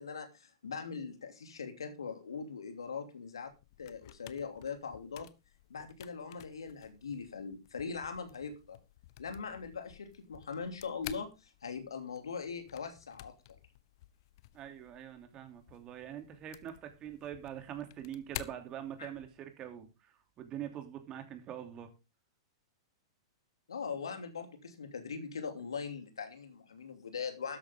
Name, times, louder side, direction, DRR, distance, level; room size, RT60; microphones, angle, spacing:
voice 1, 0.0-3.5 3.8-5.3 5.7-8.8 9.2-13.6 19.0-19.1 23.7-27.6, left 5 dB, 75° left, 6 dB, 2.9 m, -41 dB
sound 1, 3.4-19.4, left 15 dB, 55° left, 1.0 m, -52 dB
voice 2, 14.5-20.1 20.4-21.9, right 10 dB, 30° right, 6 dB, 3.0 m, -44 dB
13.0 x 10.0 x 3.7 m, 0.28 s
figure-of-eight pair, 105°, 3 cm